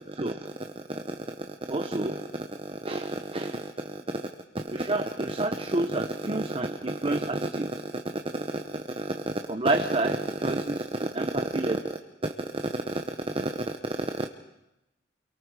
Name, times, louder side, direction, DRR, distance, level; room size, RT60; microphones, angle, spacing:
voice 1, 0.2-4.2 4.5-8.0 8.3-9.2 9.5-11.9 12.9-13.0 13.3-13.5 14.2-14.3, right 2 dB, 30° right, 6 dB, 0.9 m, -29 dB
29.5 x 23.0 x 4.9 m, 0.95 s
head